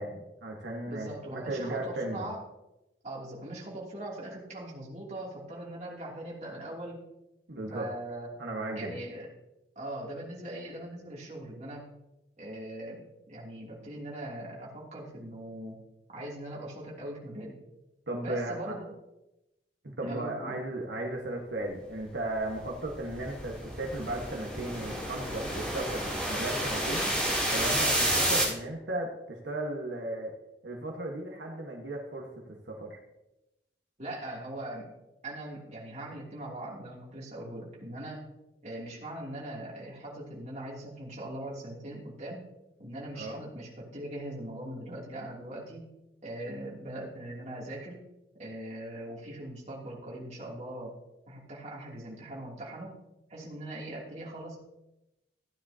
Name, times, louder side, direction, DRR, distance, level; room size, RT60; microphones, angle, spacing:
voice 1, 0.0-2.3 7.5-7.9 8.4-9.0 18.1-18.7 20.0-27.1 27.5-30.3 30.6-32.3 32.7-33.0 43.1-43.4, right 1 dB, 80° right, -1 dB, 1.5 m, -35 dB
voice 2, 0.9-2.4 3.0-7.0 7.7-8.3 8.7-9.3 9.7-11.9 12.4-15.8 16.1-17.6 18.2-18.9 20.0-20.6 34.0-34.9 35.2-38.2 38.6-42.5 42.8-45.9 46.2-48.0 48.4-50.9 51.3-53.0 53.3-54.6, right 1 dB, 40° right, -4 dB, 2.9 m, -41 dB
sound 1, 22.4-28.4, right 1 dB, 5° left, 3.6 m, -30 dB
15.0 x 9.8 x 2.9 m, 0.95 s
head